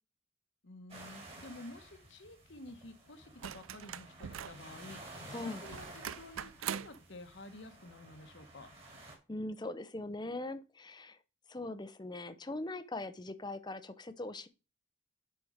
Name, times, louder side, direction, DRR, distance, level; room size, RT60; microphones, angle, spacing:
voice 1, 0.6-8.7, left 2 dB, 65° left, 1.2 m, -51 dB
sound 1, 0.9-9.2, right 2 dB, 30° right, 2.7 m, -52 dB
sound 2, 3.4-4.7 5.6-7.0 8.6-8.7, right 9 dB, 90° right, 0.5 m, -42 dB
voice 2, 5.3-5.6 9.3-11.2 11.5-14.5, left 2 dB, 20° left, 0.7 m, -41 dB
10.5 x 4.5 x 5.0 m
head